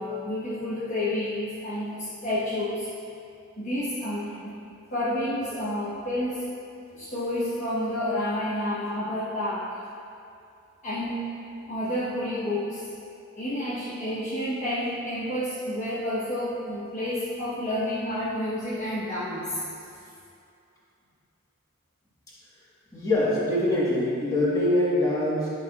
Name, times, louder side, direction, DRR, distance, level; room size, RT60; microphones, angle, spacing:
voice 1, 0.0-2.9 3.6-4.5 4.9-6.4 6.9-9.7 10.8-11.3 11.7-12.9 13.4-19.6, left 1 dB, 35° left, -10 dB, 1.0 m, -30 dB
voice 2, 22.9-25.5, left 1 dB, 15° left, -8 dB, 1.4 m, -24 dB
10.5 x 5.8 x 2.4 m, 2.6 s
head